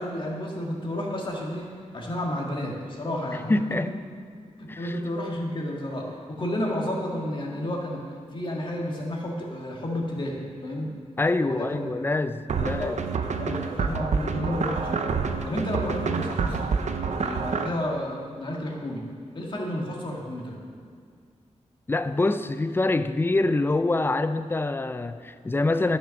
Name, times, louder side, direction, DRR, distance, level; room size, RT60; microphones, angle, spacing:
voice 1, 0.0-3.5 4.6-8.0 8.3-10.9 11.4-12.0 12.6-12.9 13.4-15.2 15.4-16.7 17.0-19.0 19.3-20.6, left 1 dB, 40° left, -1 dB, 1.8 m, -31 dB
voice 2, 3.5-3.9 4.7-5.0 11.2-13.0 21.9-26.0, left 2 dB, 20° left, 11 dB, 0.4 m, -25 dB
sound 1, 12.5-17.7, right 5 dB, 70° right, 0.6 m, -28 dB
12.0 x 5.9 x 6.4 m, 2.2 s
wide cardioid pair, 155°, 12 cm